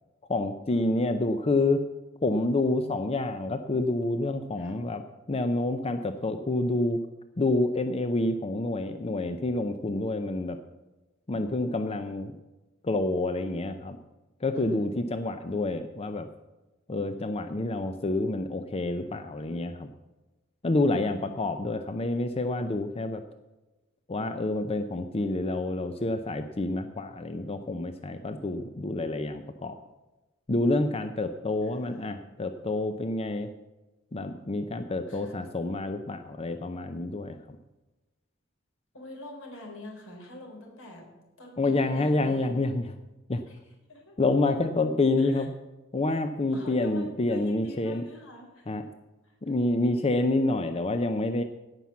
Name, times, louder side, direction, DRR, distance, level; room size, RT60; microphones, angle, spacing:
voice 1, 0.3-1.8 2.2-5.0 5.3-7.0 7.4-10.6 11.3-12.3 12.8-14.0 14.4-16.3 16.9-19.9 20.6-23.2 24.1-29.8 30.5-33.5 34.1-37.6 41.6-42.9 43.3-43.4 44.2-45.5 45.9-48.0 48.7-48.8 49.4-51.4, left 2 dB, 30° left, 8 dB, 0.6 m, -28 dB
voice 2, 20.9-21.4 31.6-32.1 35.1-35.5 38.9-41.1 41.4-42.5 43.5-43.6 43.9-44.2 45.2-45.5 46.5-48.7 49.2-49.5, left 1 dB, 80° left, 0 dB, 4.0 m, -46 dB
17.0 x 5.8 x 7.2 m, 1.1 s
head